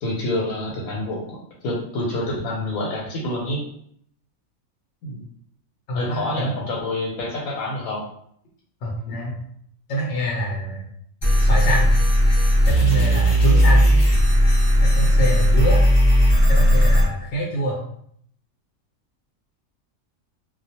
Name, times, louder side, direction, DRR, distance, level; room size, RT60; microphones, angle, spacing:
voice 1, 0.0-1.4 1.6-3.6 5.0-5.2 5.9-8.0 15.1-15.3, left 1 dB, 85° left, -4 dB, 1.0 m, -27 dB
voice 2, 5.9-6.5 8.8-9.3 9.9-10.9 11.4-11.9 12.7-13.9 14.8-15.8 16.5-17.8, right 1 dB, 65° left, -4 dB, 0.8 m, -25 dB
sound 1, 11.2-17.0, equal, 25° left, 0.5 m, -16 dB
2.3 x 2.1 x 2.7 m, 0.67 s
omnidirectional pair, 1.4 m